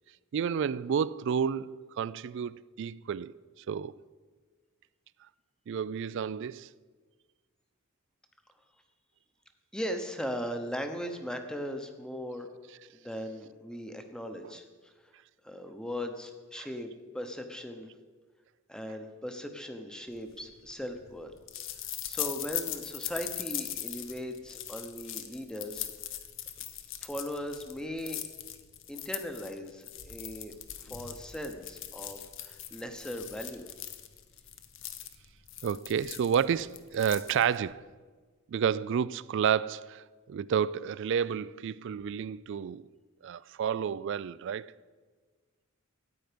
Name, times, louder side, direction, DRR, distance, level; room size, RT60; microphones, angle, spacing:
voice 1, 0.3-1.7 2.0-3.3 3.7-3.9 5.7-6.7 16.6-16.7 35.6-37.9 38.5-42.8 43.2-44.7, right 7 dB, 60° right, 0.3 m, -30 dB
voice 2, 9.7-12.5 12.9-15.1 15.4-16.9 17.1-17.9 18.7-21.3 22.1-25.9 27.0-28.2 28.9-33.7, equal, 5° left, 0.8 m, -38 dB
sound 1, 20.3-37.7, left 11 dB, 60° left, 0.8 m, -40 dB
13.5 x 9.2 x 5.1 m
head